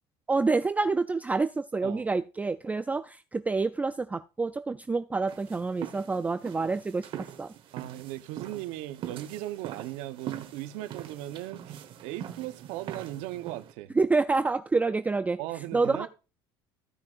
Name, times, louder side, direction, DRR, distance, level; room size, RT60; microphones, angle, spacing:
voice 1, 0.3-7.1 7.4-7.5 14.0-15.4 15.7-16.1, right 3 dB, 15° right, 0.4 m, -27 dB
sound 1, 5.3-13.7, right 10 dB, 50° right, 1.2 m, -42 dB
voice 2, 7.7-14.0 15.4-16.1, right 15 dB, 75° right, 0.9 m, -38 dB
15.0 x 6.0 x 2.5 m
supercardioid pair, 100°, 11 cm